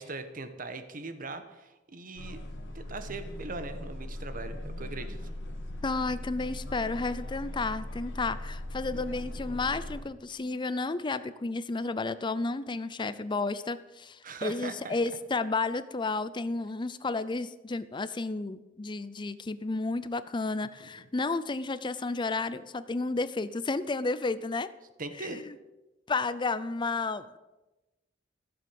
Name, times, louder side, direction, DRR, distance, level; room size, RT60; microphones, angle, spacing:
voice 1, 0.0-2.4 2.7-5.2 14.2-15.0 20.8-21.1 25.0-25.5, right 3 dB, 50° right, 9 dB, 1.3 m, -40 dB
sound 1, 2.2-10.0, left 1 dB, 80° left, 2.1 m, -39 dB
voice 2, 5.8-24.7 25.2-25.5 26.1-27.4, left 3 dB, 25° left, 14 dB, 0.5 m, -32 dB
15.0 x 7.5 x 7.8 m, 1.1 s
head